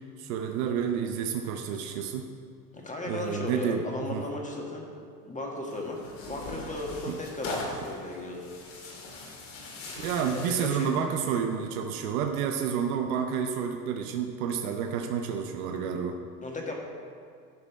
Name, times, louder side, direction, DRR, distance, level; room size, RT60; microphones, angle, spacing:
voice 1, 0.2-2.3 3.1-4.2 7.1-7.2 9.9-16.2, right 7 dB, 65° right, 5 dB, 0.8 m, -30 dB
voice 2, 2.7-4.9 5.3-6.0 6.3-8.5 10.3-10.9 16.4-16.7, left 2 dB, 15° left, -1 dB, 1.6 m, -35 dB
Tearing, 5.7-11.0, left 2 dB, 60° left, 2.4 m, -40 dB
11.5 x 5.2 x 4.6 m, 2.2 s
hypercardioid pair, 80°, 48 cm